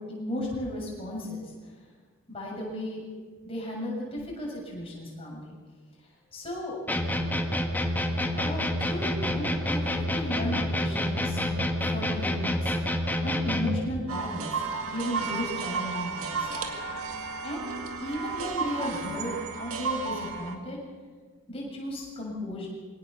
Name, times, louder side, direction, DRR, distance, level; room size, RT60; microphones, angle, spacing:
voice 1, 0.0-1.5 2.3-3.0 3.4-5.5 6.3-6.8 8.4-11.4 11.9-12.7 13.2-16.5 17.2-17.7 18.0-19.3 19.6-20.8 21.5-22.7, left 1 dB, 25° left, -4 dB, 6.9 m, -35 dB
sound 1, 6.9-13.9, left 1 dB, 10° left, 1.4 m, -28 dB
sound 2, 14.1-20.6, right 5 dB, 75° right, 2.1 m, -33 dB
23.0 x 18.0 x 6.9 m, 1.5 s
head